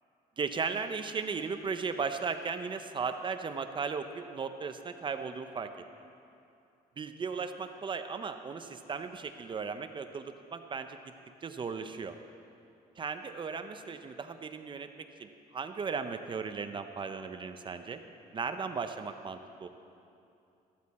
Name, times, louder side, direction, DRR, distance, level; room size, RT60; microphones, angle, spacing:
voice 1, 0.4-5.7 7.0-11.1 11.4-12.2 13.0-18.0 18.3-19.7, right 5 dB, 30° right, 8 dB, 0.6 m, -36 dB
14.5 x 13.0 x 4.2 m, 2.6 s
cardioid pair, 140°, 16 cm